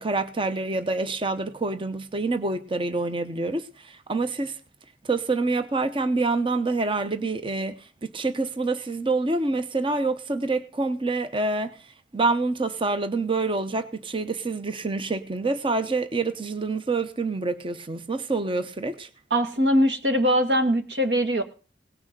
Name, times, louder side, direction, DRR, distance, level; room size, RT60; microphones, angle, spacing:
voice 1, 0.0-4.6 5.0-7.9 8.1-11.8 12.1-19.1, right 3 dB, 30° right, 0.8 m, -27 dB
voice 2, 19.3-21.4, equal, 70° right, 1.9 m, -21 dB
18.0 x 6.2 x 6.7 m
head